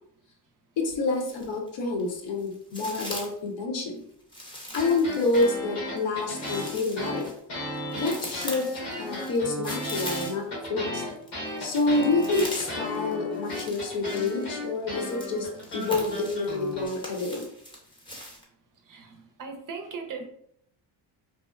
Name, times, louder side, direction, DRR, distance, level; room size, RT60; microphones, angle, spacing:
voice 1, 0.8-4.0 4.7-7.3 7.9-11.0 11.6-17.4, left 3 dB, 65° left, 1 dB, 0.8 m, -28 dB
sound 1, 0.8-1.7 2.0-3.5 4.3-10.6 11.0-18.4, equal, 10° left, 0.7 m, -41 dB
sound 2, 4.7-16.9, left 1 dB, 80° left, 1.3 m, -35 dB
voice 2, 18.9-20.3, right 5 dB, 45° right, 4 dB, 0.5 m, -38 dB
2.7 x 2.0 x 2.3 m, 0.68 s
supercardioid pair, 75°, 48 cm